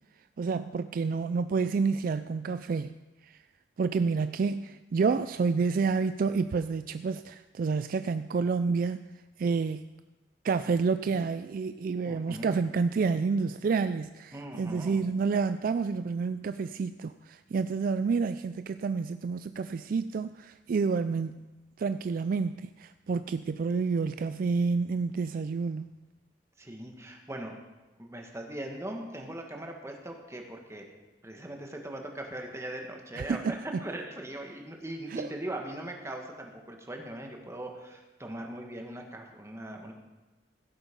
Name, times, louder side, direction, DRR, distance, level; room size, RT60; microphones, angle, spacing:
voice 1, 0.4-3.0 3.2-3.4 3.8-9.0 9.4-9.9 10.4-21.4 21.8-25.9 33.2-33.4 35.1-35.3, right 4 dB, 50° right, 12 dB, 0.3 m, -29 dB
voice 2, 12.0-12.6 14.3-15.0 26.6-27.5 28.0-30.9 31.2-39.9, right 1 dB, 15° right, 2 dB, 1.6 m, -40 dB
16.0 x 8.0 x 5.3 m, 1.1 s
head